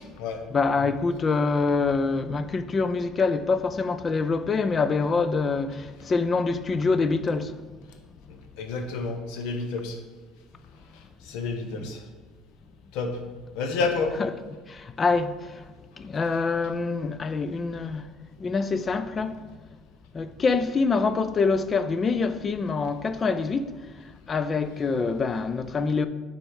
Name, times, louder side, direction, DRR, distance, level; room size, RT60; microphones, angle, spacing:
voice 1, 0.5-7.6 11.7-11.9 14.2-14.3 14.7-15.6 16.0-18.0 18.4-19.4 20.1-23.7 24.3-26.1, left 4 dB, 20° left, 0.3 m, -25 dB
voice 2, 8.6-10.0 11.2-12.0 12.9-13.2 13.5-14.1, left 4 dB, 70° left, 0.9 m, -29 dB
6.5 x 4.2 x 4.7 m
cardioid pair, 160°, 0 cm